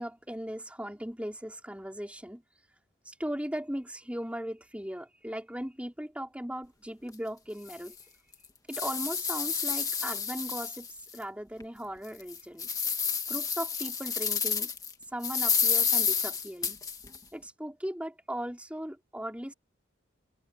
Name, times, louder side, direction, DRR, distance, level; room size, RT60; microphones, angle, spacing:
voice 1, 0.0-2.4 3.0-8.0 8.7-10.9 11.1-12.7 13.3-14.7 15.1-16.8 17.3-19.5, equal, 5° right, 4.6 m, -38 dB
sound 1, 7.1-7.2 7.7-7.8 8.3-11.2 11.6-11.7 12.2-14.9 15.2-17.2, left 6 dB, 20° left, 1.6 m, -30 dB
head